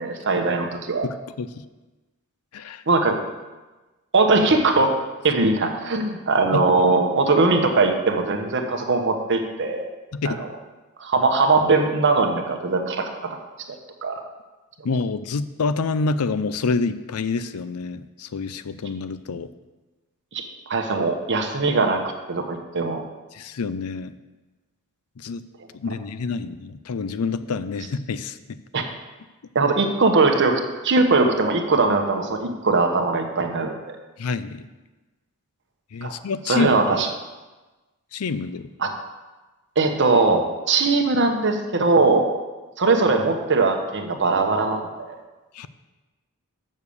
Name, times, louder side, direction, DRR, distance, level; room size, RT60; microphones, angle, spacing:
voice 1, 0.0-1.1 2.9-3.2 4.1-5.0 5.2-9.9 10.2-10.5 11.0-13.1 14.0-14.2 20.3-22.0 22.3-23.0 28.7-28.8 29.5-34.0 36.0-36.1 36.5-37.1 38.8-38.9 39.8-42.2 42.8-45.2, right 3 dB, 55° right, 4 dB, 1.0 m, -20 dB
voice 2, 1.0-1.5 2.5-2.8 6.5-6.7 10.1-10.4 14.8-19.5 23.3-24.1 25.2-25.4 25.7-28.6 34.2-34.7 35.9-37.0 38.1-38.7 45.5-45.7, left 4 dB, 85° left, 13 dB, 0.5 m, -27 dB
6.8 x 6.4 x 7.0 m, 1.2 s
head